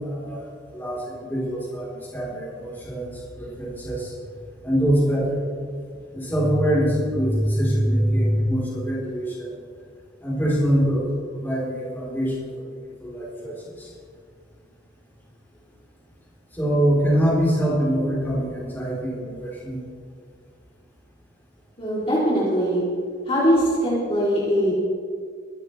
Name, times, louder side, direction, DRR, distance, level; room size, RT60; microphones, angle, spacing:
voice 1, 0.0-3.1 3.4-4.1 4.6-5.4 6.1-9.5 10.2-11.1 11.3-12.7 13.0-13.9 16.6-19.8, equal, 10° left, -6 dB, 4.1 m, -24 dB
voice 2, 21.8-22.8 23.3-24.7, equal, 30° left, -8 dB, 3.4 m, -21 dB
22.5 x 12.5 x 3.4 m, 2.1 s
head